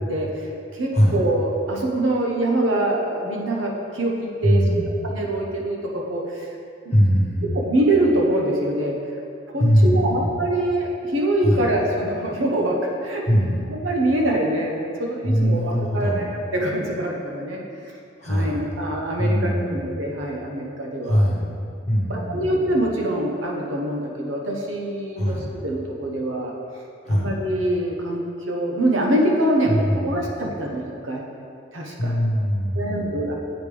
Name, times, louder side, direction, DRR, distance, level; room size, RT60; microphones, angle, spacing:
voice 1, 0.1-6.5 7.5-9.0 9.5-13.2 13.7-17.6 18.2-21.2 22.1-26.5 27.1-31.2 31.7-32.1 32.7-33.3, right 1 dB, 85° right, -1 dB, 1.0 m, -24 dB
voice 2, 4.4-4.9 6.9-7.5 9.6-10.3 11.4-11.6 13.3-13.6 15.2-16.2 18.2-18.6 19.2-19.8 21.0-21.5 21.9-22.8 25.2-25.5 27.0-27.3 29.7-30.2 32.0-33.3, equal, 35° left, -3 dB, 1.1 m, -21 dB
8.0 x 5.1 x 3.4 m, 2.5 s
head